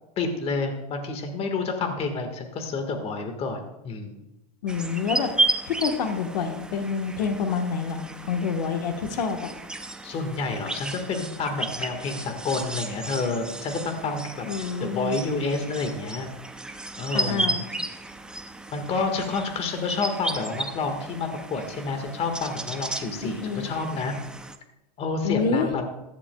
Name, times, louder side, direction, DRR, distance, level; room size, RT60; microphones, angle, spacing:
voice 1, 0.2-4.2 10.0-14.5 14.8-16.3 17.0-17.6 18.7-24.1 25.0-25.8, left 3 dB, 30° left, 5 dB, 1.7 m, -29 dB
voice 2, 4.6-5.3 5.6-9.5 14.5-15.2 17.1-17.6 23.2-23.7 25.2-25.7, left 5 dB, 90° left, 5 dB, 1.3 m, -27 dB
sound 1, 4.7-24.6, right 2 dB, 5° right, 0.5 m, -33 dB
15.0 x 11.5 x 2.3 m, 0.97 s
supercardioid pair, 135°, 20 cm